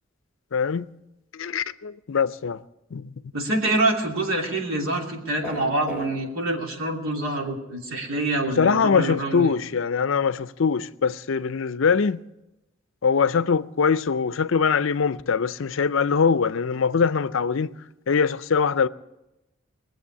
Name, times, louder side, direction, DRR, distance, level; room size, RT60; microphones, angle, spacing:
voice 1, 0.5-0.9 1.3-2.6 2.9-3.1 8.6-12.2 13.0-17.7 18.1-18.9, left 5 dB, 65° left, 0.5 m, -22 dB
voice 2, 3.3-9.5, right 2 dB, 75° right, 2.9 m, -26 dB
sound 1, 5.4-6.1, left 1 dB, 10° right, 4.1 m, -32 dB
21.0 x 7.7 x 8.5 m
head